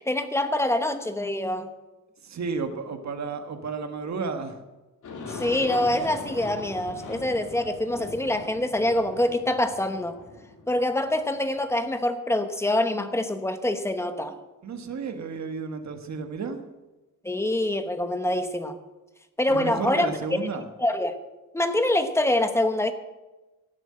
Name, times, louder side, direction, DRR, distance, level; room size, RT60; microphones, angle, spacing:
voice 1, 0.0-1.7 5.3-10.1 10.7-14.3 17.2-18.8 19.4-20.1 20.8-21.1 21.5-22.9, left 1 dB, 10° left, 8 dB, 1.0 m, -25 dB
voice 2, 2.2-4.6 14.6-16.6 19.4-20.7, right 5 dB, 65° right, 7 dB, 1.5 m, -32 dB
Aircraft, 5.0-11.7, left 3 dB, 85° left, 2.8 m, -40 dB
17.0 x 7.9 x 7.7 m, 1.1 s
wide cardioid pair, 175°, 30 cm